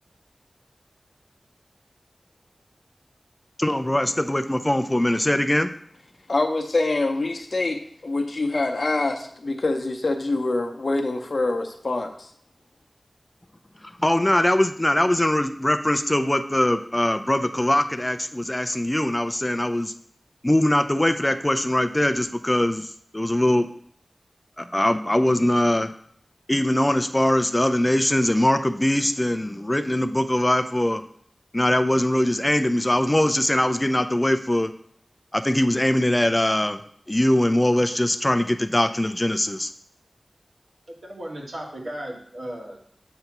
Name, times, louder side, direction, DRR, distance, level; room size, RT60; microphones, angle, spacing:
voice 1, 3.6-5.7 14.0-19.9 20.4-23.7 24.6-25.9 26.5-31.0 31.5-34.7 35.3-36.8 37.1-39.7, left 1 dB, 20° left, 9 dB, 0.4 m, -22 dB
voice 2, 6.3-12.3, left 2 dB, 60° left, 4 dB, 0.8 m, -25 dB
voice 3, 40.9-42.8, right 1 dB, 85° right, -1 dB, 1.4 m, -36 dB
7.9 x 2.8 x 5.8 m, 0.63 s
wide cardioid pair, 65°, 0 cm